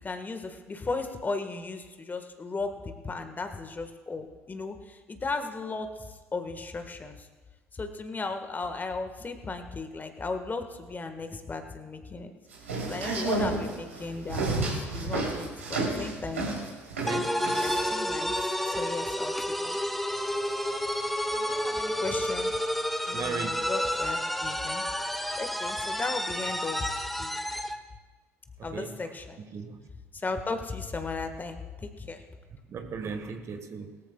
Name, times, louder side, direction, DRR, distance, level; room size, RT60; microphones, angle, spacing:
voice 1, 0.0-7.3 7.7-12.3 12.8-16.5 17.6-18.4 18.6-19.3 19.6-19.8 21.3-22.5 23.1-24.8 25.4-26.9 27.2-27.5 28.6-29.4 30.1-32.2, left 3 dB, 25° left, 7 dB, 1.5 m, -36 dB
sound 1, 12.5-17.9, right 2 dB, 80° right, 3.1 m, -31 dB
voice 2, 17.0-17.4 23.1-23.5 28.6-29.1 29.4-29.8 32.7-34.0, right 5 dB, 40° right, 7 dB, 1.3 m, -37 dB
sound 2, 17.1-27.8, equal, ahead, 1.0 m, -30 dB
21.5 x 14.0 x 2.3 m, 1.3 s
figure-of-eight pair, 55°, 7 cm